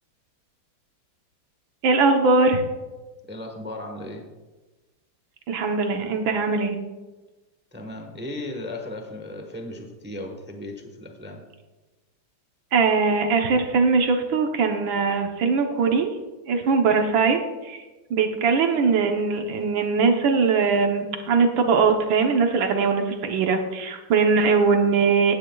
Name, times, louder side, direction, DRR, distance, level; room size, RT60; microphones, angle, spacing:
voice 1, 1.8-2.6 5.5-6.8 12.7-16.1 16.5-17.8 18.1-25.3, right 4 dB, 75° right, 4 dB, 1.7 m, -21 dB
voice 2, 3.3-4.3 7.7-11.4, left 1 dB, 10° right, 3 dB, 0.7 m, -36 dB
16.0 x 9.8 x 2.3 m, 1.2 s
omnidirectional pair, 2.2 m